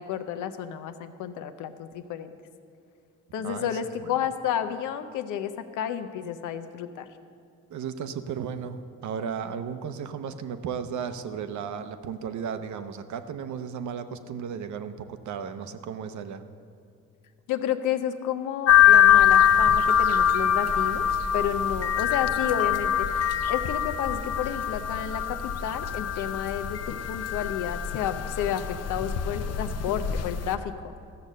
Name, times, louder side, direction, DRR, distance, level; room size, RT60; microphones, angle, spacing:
voice 1, 0.0-2.3 3.3-7.1 17.5-21.1 21.3-30.9, left 9 dB, 85° left, 9 dB, 0.8 m, -31 dB
voice 2, 3.4-3.7 4.0-4.1 7.7-16.4, right 7 dB, 70° right, 10 dB, 0.8 m, -35 dB
sound 1, 18.7-30.6, left 9 dB, 55° left, 0.6 m, -23 dB
14.0 x 6.7 x 7.5 m, 2.3 s
cardioid pair, 90°, 30 cm